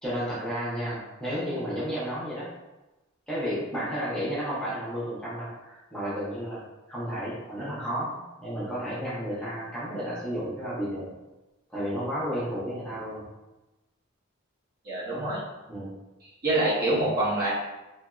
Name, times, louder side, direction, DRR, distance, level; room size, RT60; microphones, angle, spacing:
voice 1, 0.0-2.5 3.3-6.6 6.9-8.1 8.4-11.1 11.7-13.3 15.1-15.2 15.7-15.9, equal, 5° left, -9 dB, 0.7 m, -32 dB
voice 2, 14.8-15.4 16.4-17.5, right 1 dB, 40° right, -7 dB, 0.8 m, -25 dB
2.8 x 2.6 x 2.3 m, 1.0 s
head